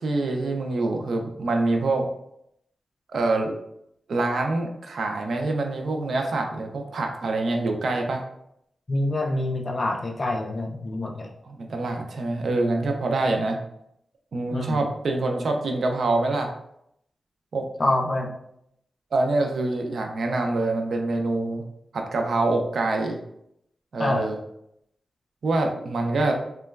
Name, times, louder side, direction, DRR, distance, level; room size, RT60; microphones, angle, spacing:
voice 1, 0.0-2.1 3.1-3.5 4.1-8.2 11.5-13.6 14.3-16.5 17.5-17.7 19.1-21.6 21.9-23.2 23.9-24.4 25.4-26.3, right 2 dB, 70° right, 3 dB, 0.4 m, -25 dB
voice 2, 8.9-11.3 14.5-14.8 17.8-18.3 24.0-24.3, left 1 dB, 35° left, 2 dB, 0.3 m, -26 dB
2.9 x 2.2 x 2.3 m, 0.76 s
wide cardioid pair, 105°, 0 cm